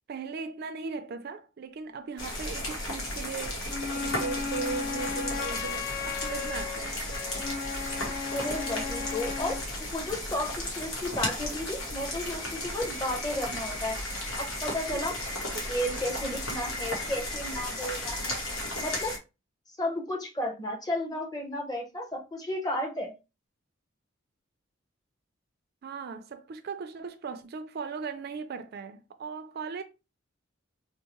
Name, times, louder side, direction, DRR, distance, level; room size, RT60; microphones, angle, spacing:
voice 1, 0.1-7.0 14.9-15.1 15.5-15.7 25.8-29.8, right 5 dB, 50° right, 0.4 m, -38 dB
sound 1, 2.2-19.2, left 1 dB, 85° left, 1.0 m, -34 dB
Wind instrument woodwind instrument, 3.7-9.7, left 6 dB, 45° left, 0.3 m, -36 dB
voice 2, 8.3-14.0 14.4-15.1 15.5-18.4 18.8-19.1 19.8-23.1, left 1 dB, 20° left, 0.8 m, -33 dB
4.4 x 2.0 x 2.9 m
head